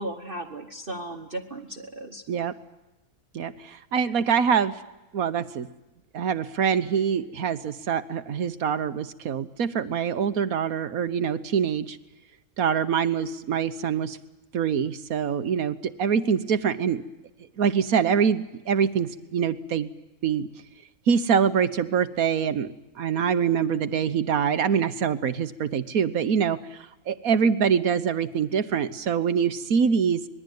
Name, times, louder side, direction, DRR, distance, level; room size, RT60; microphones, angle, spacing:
voice 1, 0.0-2.2, right 1 dB, 40° right, 4 dB, 1.4 m, -36 dB
voice 2, 3.3-4.7 5.1-5.7 6.1-12.0 12.6-14.2 14.5-17.0 17.6-19.9 20.2-20.5 21.1-22.7 23.0-26.8 27.1-30.2, right 7 dB, 75° right, 12 dB, 1.5 m, -24 dB
26.0 x 21.0 x 9.4 m, 1.0 s
omnidirectional pair, 1.5 m